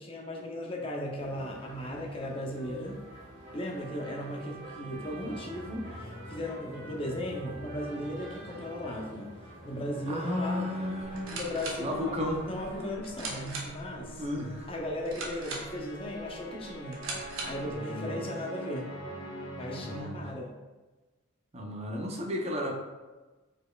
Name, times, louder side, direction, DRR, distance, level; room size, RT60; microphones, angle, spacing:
voice 1, 0.0-3.0 3.5-9.3 9.6-10.7 11.3-14.2 14.7-17.0 17.4-18.9 19.6-20.5, left 1 dB, 25° left, -1 dB, 0.6 m, -36 dB
sound 1, 1.2-12.9, right 1 dB, 55° right, 1.5 m, -47 dB
sound 2, 5.2-20.0, right 1 dB, 60° left, 1.2 m, -45 dB
voice 2, 10.1-11.4 11.8-12.4 14.2-14.7 17.6-18.2 19.8-20.3 21.5-22.7, left 1 dB, 30° right, 0 dB, 0.6 m, -34 dB
sound 3, 11.0-17.7, right 2 dB, 70° right, 1.0 m, -41 dB
5.2 x 4.2 x 2.3 m, 1.2 s
head